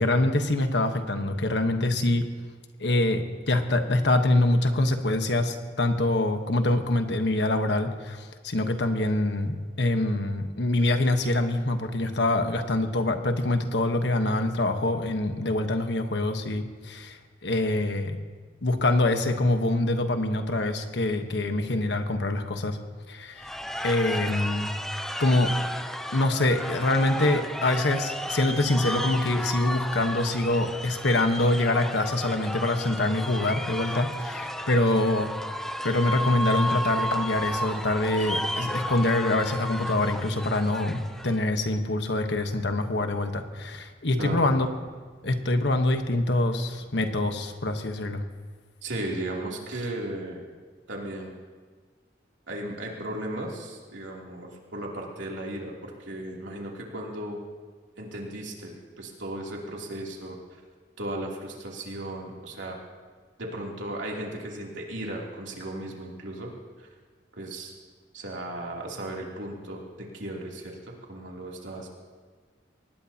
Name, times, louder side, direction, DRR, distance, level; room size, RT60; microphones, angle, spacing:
voice 1, 0.0-2.3 2.8-18.2 18.6-22.8 23.1-23.5 23.8-24.7 25.2-25.5 26.1-35.3 35.8-44.7 45.2-48.2, left 2 dB, 70° left, 6 dB, 1.2 m, -25 dB
sound 1, 23.4-41.4, equal, ahead, 0.6 m, -33 dB
voice 2, 44.2-44.5 48.8-50.4 50.9-51.3 52.5-57.4 58.0-60.6 61.0-62.8 63.4-66.5 66.8-66.9 67.3-67.7 68.1-71.9, right 1 dB, 85° right, -2 dB, 3.0 m, -36 dB
23.5 x 19.0 x 2.9 m, 1.5 s
head